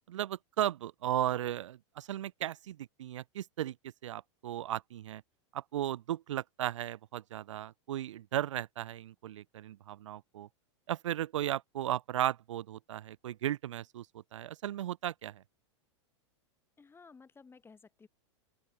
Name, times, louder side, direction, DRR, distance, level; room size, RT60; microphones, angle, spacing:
voice 1, 0.1-3.8 4.0-5.2 5.5-10.5 10.9-14.1 14.3-15.4, right 12 dB, 80° right, 1.8 m, -35 dB
voice 2, 16.8-18.1, left 4 dB, 15° left, 4.3 m, -56 dB
open air
hypercardioid pair, 115°, 16 cm